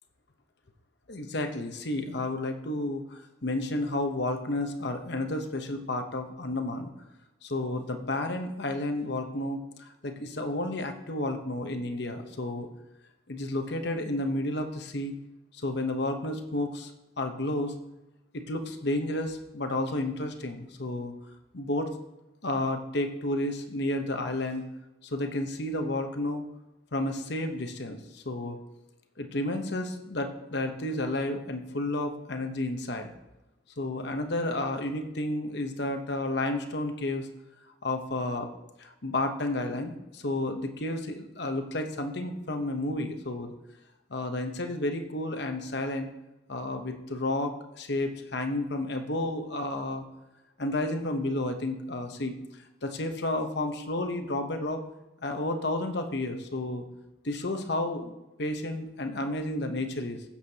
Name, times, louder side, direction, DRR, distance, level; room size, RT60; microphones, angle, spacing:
voice 1, 1.1-6.9 7.4-9.6 10.0-12.7 13.3-15.1 15.6-16.9 17.2-17.7 18.3-21.1 21.5-22.0 22.4-24.6 25.1-26.4 26.9-28.6 29.2-33.1 33.8-37.3 37.8-38.5 38.8-43.5 44.1-46.1 46.5-47.5 47.8-50.1 50.6-52.3 52.8-54.8 55.2-56.8 57.2-58.1 58.4-60.2, left 1 dB, 55° left, 5 dB, 1.0 m, -31 dB
15.5 x 7.3 x 2.9 m, 0.98 s
head